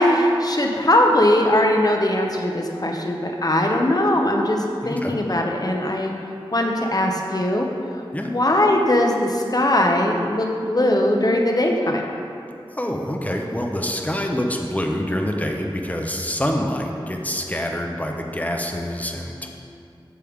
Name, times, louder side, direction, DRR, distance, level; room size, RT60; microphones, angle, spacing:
voice 1, 0.0-6.1 6.5-7.7 8.2-12.1, left 1 dB, 40° left, 1 dB, 0.9 m, -20 dB
voice 2, 4.8-5.2 8.1-8.3 12.7-19.5, equal, 15° left, 2 dB, 0.9 m, -26 dB
8.5 x 7.5 x 3.6 m, 2.5 s
wide cardioid pair, 55°, 10 cm